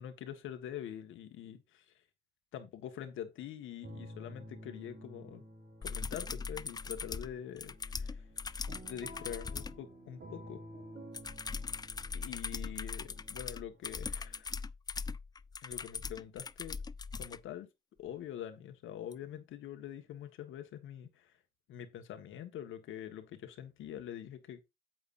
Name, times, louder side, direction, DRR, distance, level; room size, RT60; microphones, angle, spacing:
voice 1, 0.0-1.9 2.5-5.4 5.8-8.3 8.8-10.6 12.1-14.5 15.6-16.8 17.2-17.7 18.0-21.3 21.7-24.6, left 10 dB, 80° left, 1.7 m, -45 dB
sound 1, 3.8-14.4, equal, 55° right, 3.0 m, -52 dB
sound 2, 5.8-9.8 11.1-17.4 19.1-19.2, left 5 dB, 20° left, 0.4 m, -40 dB
9.1 x 8.1 x 2.7 m
cardioid pair, 90°, 20 cm